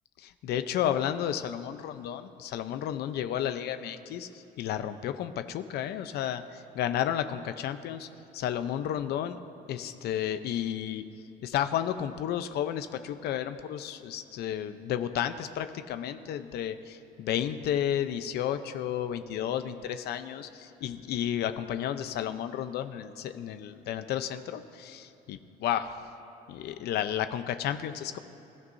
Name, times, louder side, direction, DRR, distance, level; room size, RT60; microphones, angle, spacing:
voice 1, 0.2-4.3 4.6-8.1 8.3-9.4 9.7-11.0 11.4-25.9 26.5-28.2, left 10 dB, 75° left, 10 dB, 0.7 m, -32 dB
26.0 x 13.0 x 2.7 m, 2.9 s
cardioid pair, 110°, 17 cm